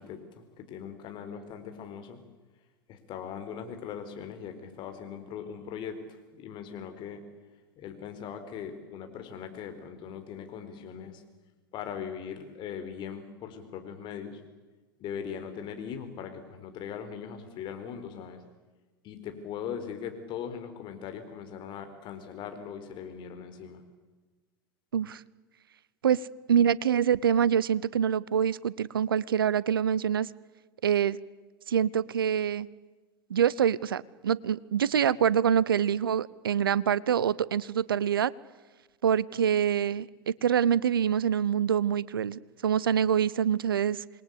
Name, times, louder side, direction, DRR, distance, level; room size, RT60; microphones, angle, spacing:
voice 1, 0.0-2.2 2.9-6.0 6.3-7.2 7.8-11.2 11.7-14.4 15.0-18.4 19.0-23.8, left 7 dB, 40° left, 7 dB, 4.4 m, -40 dB
voice 2, 26.0-30.3 30.8-31.2 31.7-32.7 33.3-38.3 39.0-44.0, right 8 dB, 75° right, 22 dB, 0.8 m, -25 dB
27.5 x 21.5 x 8.4 m, 1.3 s
figure-of-eight pair, 85°, 12 cm